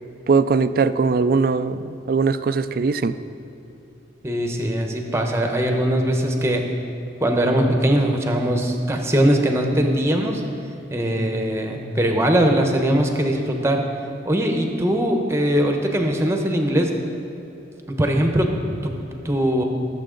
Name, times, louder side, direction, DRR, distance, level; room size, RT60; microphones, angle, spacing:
voice 1, 0.3-3.1, right 4 dB, 50° right, 13 dB, 0.3 m, -20 dB
voice 2, 4.2-6.6 7.2-10.4 10.9-13.8 14.2-16.9 17.9-18.5 18.8-19.0 19.2-19.6, right 1 dB, 15° right, 3 dB, 0.9 m, -21 dB
18.5 x 7.5 x 3.8 m, 3.0 s
head